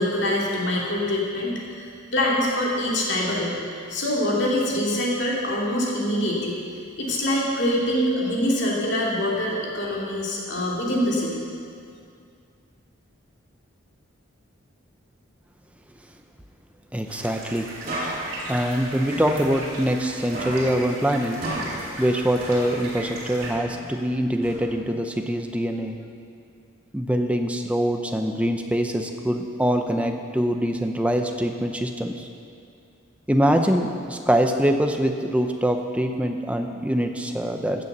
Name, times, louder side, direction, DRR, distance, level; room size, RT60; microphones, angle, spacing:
voice 1, 0.0-3.6 3.9-6.6 7.0-11.4, left 1 dB, 55° left, -4 dB, 2.6 m, -24 dB
voice 2, 16.9-17.7 18.5-21.4 22.0-26.0 26.9-32.3 33.3-37.8, equal, 5° right, 5 dB, 0.6 m, -24 dB
sound 1, 17.1-23.5, right 2 dB, 80° right, 3.3 m, -37 dB
sound 2, 17.8-20.1 20.3-23.0 23.4-25.1, right 1 dB, 40° right, 3.1 m, -35 dB
16.0 x 6.8 x 6.7 m, 2.4 s
head